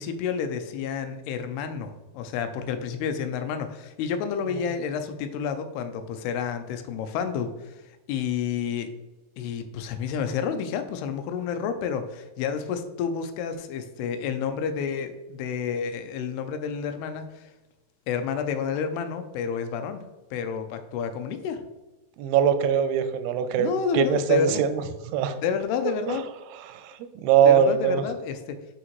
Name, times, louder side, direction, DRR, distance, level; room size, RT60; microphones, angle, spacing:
voice 1, 0.0-7.7 8.1-8.9 9.4-17.5 18.1-20.0 20.3-21.7 23.6-24.6 25.4-26.2 27.4-28.8, left 7 dB, 85° left, 8 dB, 2.6 m, -30 dB
voice 2, 22.2-24.8 25.1-25.4 26.1-26.2 26.7-26.9 27.2-28.0, right 8 dB, 85° right, 10 dB, 2.6 m, -22 dB
6.3 x 5.8 x 3.0 m, 1.1 s
omnidirectional pair, 4.6 m